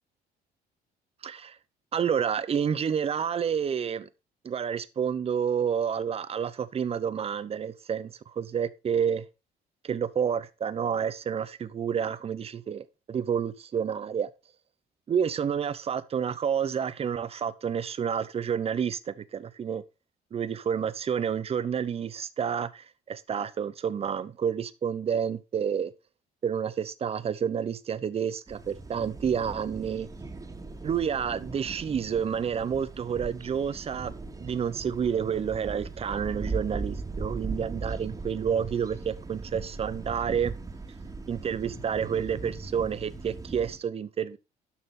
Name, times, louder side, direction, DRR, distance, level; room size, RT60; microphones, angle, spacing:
voice 1, 1.2-1.6 1.9-4.1 4.4-9.2 9.8-14.3 15.1-19.8 20.3-25.9 26.4-30.1 30.8-40.5 41.3-44.4, right 7 dB, 35° right, 0.8 m, -29 dB
sound 1, 28.5-43.8, right 3 dB, 20° right, 2.1 m, -39 dB
11.5 x 6.0 x 4.2 m
cardioid pair, 110°, 17 cm